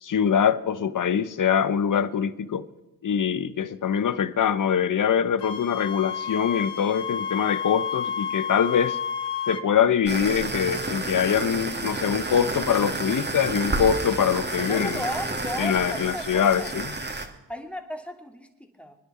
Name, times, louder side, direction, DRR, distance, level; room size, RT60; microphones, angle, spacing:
voice 1, 0.0-2.7 3.0-9.0 9.5-15.0 15.6-16.9, left 8 dB, 45° left, 1.1 m, -23 dB
Wind instrument woodwind instrument, 5.4-9.7, left 7 dB, 65° left, 1.4 m, -31 dB
sound 1, 10.1-17.3, right 2 dB, 20° right, 2.7 m, -30 dB
voice 2, 14.7-16.7 17.5-19.0, equal, 5° left, 2.9 m, -35 dB
28.5 x 10.0 x 4.4 m
supercardioid pair, 60°, 45 cm